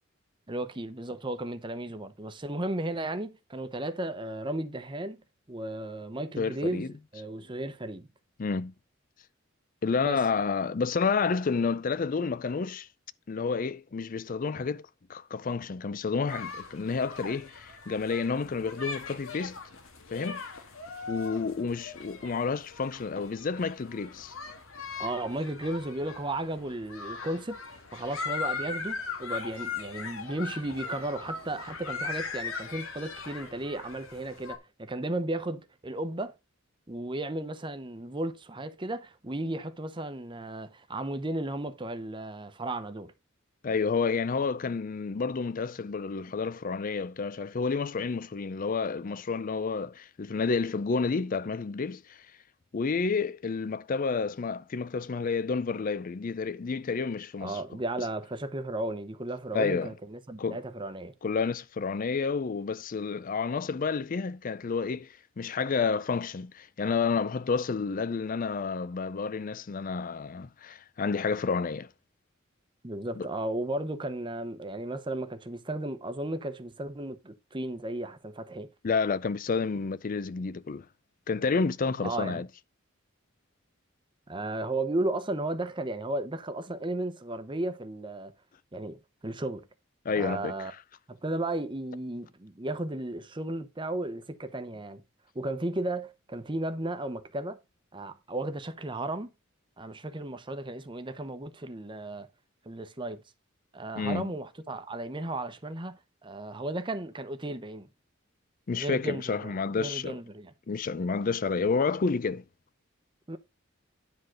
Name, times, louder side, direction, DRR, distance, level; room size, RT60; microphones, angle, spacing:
voice 1, 0.5-5.2 5.5-8.1 10.0-10.2 25.0-36.3 36.9-43.1 57.4-61.1 72.8-78.7 82.0-82.4 84.3-88.3 88.7-89.7 90.2-90.7 91.1-95.0 95.3-97.6 97.9-99.3 99.8-102.3 102.6-103.2 103.7-107.9 108.7-110.5 113.3-113.4, right 1 dB, 25° right, 0.9 m, -34 dB
voice 2, 6.4-6.9 8.4-8.7 9.8-12.9 13.3-19.6 20.1-20.4 21.1-24.3 43.6-52.3 52.7-57.6 59.5-59.9 60.4-60.6 61.2-71.9 73.2-73.3 78.8-80.9 81.3-82.5 90.0-90.8 104.0-104.3 108.7-110.2 110.7-112.4, left 5 dB, 40° left, 0.4 m, -30 dB
sound 1, 16.3-34.6, left 5 dB, 85° left, 1.8 m, -39 dB
9.9 x 3.9 x 6.4 m
head